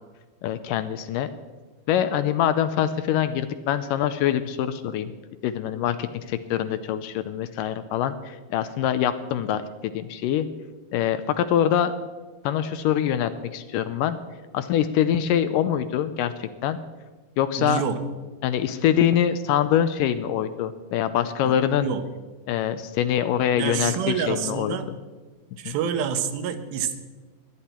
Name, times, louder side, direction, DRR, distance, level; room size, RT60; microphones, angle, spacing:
voice 1, 0.4-1.3 1.9-5.1 5.4-10.5 10.9-11.9 12.4-14.2 14.5-16.8 17.4-17.8 18.4-21.9 22.5-24.8 25.7-25.8, left 10 dB, 80° left, 11 dB, 2.1 m, -24 dB
voice 2, 17.6-18.0 21.4-22.0 23.6-24.9 25.6-27.0, right 7 dB, 85° right, 9 dB, 2.9 m, -27 dB
22.0 x 10.0 x 4.4 m, 1.3 s
omnidirectional pair, 4.1 m